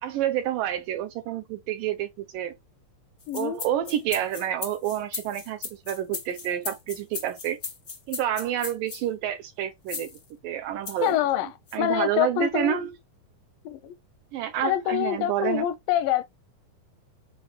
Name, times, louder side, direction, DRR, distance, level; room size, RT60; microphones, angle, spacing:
voice 1, 0.0-2.6 3.3-7.6 8.1-10.1 10.4-11.2 11.7-12.9 14.3-15.7, right 11 dB, 80° right, 2.1 m, -29 dB
sound 1, 3.2-9.0 9.9-10.2 10.8-11.1 11.7-11.8, left 5 dB, 50° left, 1.0 m, -36 dB
voice 2, 3.3-3.6 11.0-11.5 11.8-12.8 13.7-14.0 14.6-16.2, left 12 dB, 80° left, 2.1 m, -25 dB
7.1 x 4.1 x 3.2 m
omnidirectional pair, 4.4 m